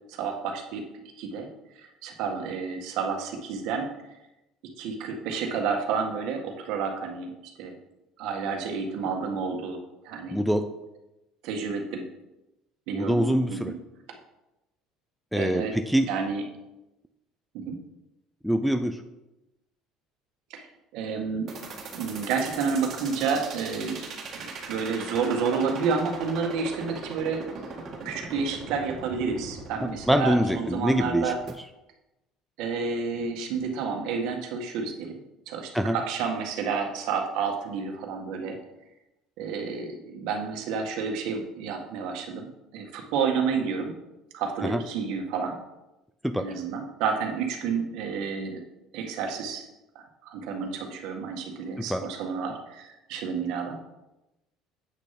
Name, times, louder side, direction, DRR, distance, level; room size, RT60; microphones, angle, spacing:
voice 1, 0.1-0.8 1.2-1.5 1.8-3.9 4.8-7.3 7.6-7.7 8.2-10.4 11.4-12.0 12.9-13.7 15.3-15.8 16.1-16.4 17.5-17.8 20.5-20.6 20.9-21.5 21.9-24.0 24.3-27.4 28.0-31.4 32.6-35.1 35.5-38.6 39.4-43.9 44.3-45.6 46.4-48.6 48.9-49.6 49.9-53.9, right 5 dB, 65° right, 3 dB, 1.6 m, -30 dB
voice 2, 10.3-10.7 12.9-13.7 15.3-16.1 18.4-19.0 30.1-31.3 35.7-36.0 44.6-44.8 46.2-46.4 51.8-52.0, equal, ahead, 7 dB, 0.4 m, -24 dB
sound 1, 21.5-31.5, right 4 dB, 35° right, 1.8 m, -39 dB
8.4 x 6.5 x 5.8 m, 0.96 s
cardioid pair, 165°, 0 cm